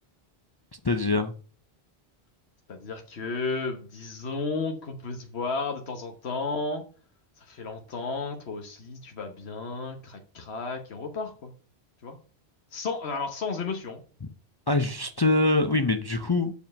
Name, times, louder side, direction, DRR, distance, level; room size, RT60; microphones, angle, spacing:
voice 1, 0.7-1.3 14.2-14.3 14.7-16.5, left 2 dB, 25° left, 0.6 m, -24 dB
voice 2, 2.7-6.8 7.4-11.5 12.0-12.2 12.7-14.0, left 4 dB, 85° left, 1.4 m, -33 dB
7.2 x 5.2 x 6.4 m
omnidirectional pair, 1.1 m